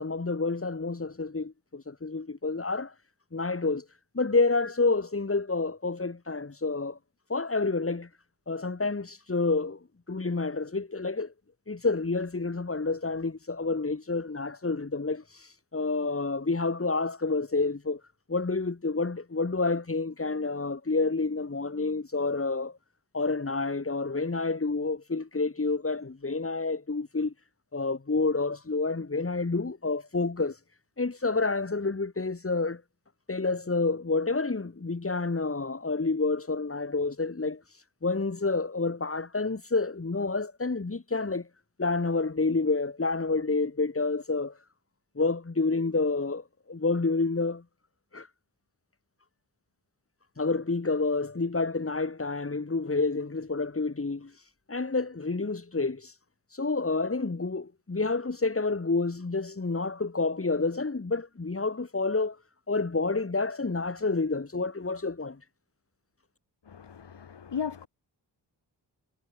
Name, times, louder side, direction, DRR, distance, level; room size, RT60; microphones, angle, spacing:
voice 1, 0.0-2.9 3.3-3.8 4.1-7.0 7.3-8.1 8.5-9.8 10.1-11.3 11.7-18.0 18.3-22.8 23.1-27.3 27.7-30.6 31.0-32.8 33.3-37.6 38.0-41.5 41.8-44.5 45.1-47.6 48.1-48.3 50.4-54.3 54.7-56.1 56.5-62.4 62.7-65.4, left 3 dB, 30° left, 6.2 m, -29 dB
voice 2, 66.7-67.9, left 7 dB, 70° left, 7.0 m, -36 dB
cardioid pair, 85°, 43 cm